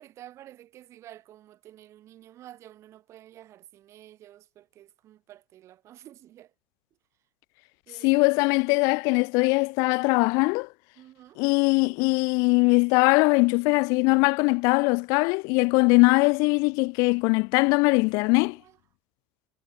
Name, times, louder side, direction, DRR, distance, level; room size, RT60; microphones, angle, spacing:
voice 1, 0.0-6.5 7.9-8.5 11.0-11.4 18.6-18.8, right 13 dB, 50° right, 2.1 m, -50 dB
voice 2, 8.0-10.7 11.4-18.6, left 30 dB, 65° left, 0.3 m, -21 dB
supercardioid pair, 110°, 6 cm